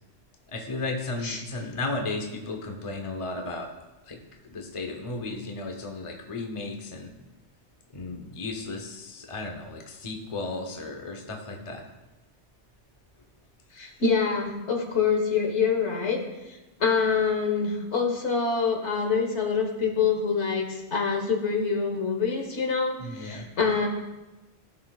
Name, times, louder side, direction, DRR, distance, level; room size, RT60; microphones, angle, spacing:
voice 1, 0.5-3.7 4.0-7.1 7.9-11.9 23.0-23.5, left 2 dB, 30° left, 2 dB, 1.0 m, -34 dB
voice 2, 13.7-16.2 16.5-23.9, left 5 dB, 70° left, 3 dB, 1.6 m, -26 dB
17.0 x 6.4 x 2.4 m, 1.1 s
omnidirectional pair, 1.2 m